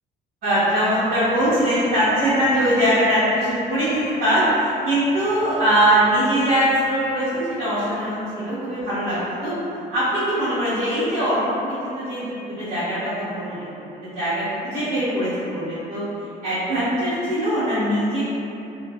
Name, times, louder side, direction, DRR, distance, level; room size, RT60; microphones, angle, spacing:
voice 1, 0.4-9.5 9.9-16.0 16.4-18.2, equal, 65° right, -15 dB, 0.9 m, -22 dB
3.1 x 2.1 x 2.2 m, 2.9 s
cardioid pair, 110°, 17 cm